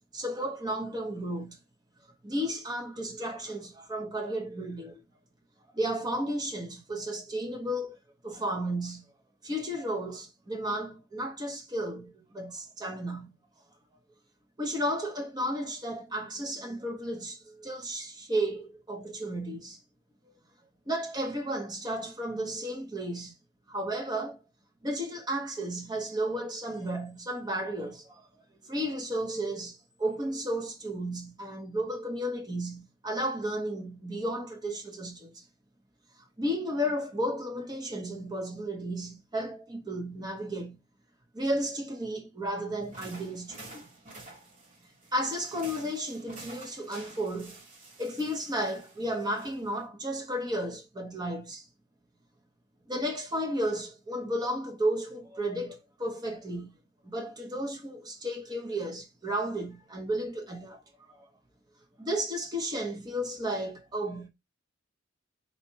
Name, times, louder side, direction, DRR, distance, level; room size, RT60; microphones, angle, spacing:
voice 1, 0.1-1.6 2.2-5.0 5.7-8.0 8.2-9.1 9.4-13.3 14.6-19.8 20.9-23.3 23.7-24.4 24.8-28.2 28.6-35.4 36.4-40.8 41.3-43.9 45.1-47.6 48.0-51.7 52.9-56.7 57.0-60.8 61.1-61.2 62.0-64.3, right 1 dB, 20° right, 1.0 m, -33 dB
sound 1, 42.8-49.8, right 2 dB, 35° right, 1.8 m, -50 dB
4.2 x 2.4 x 4.5 m
head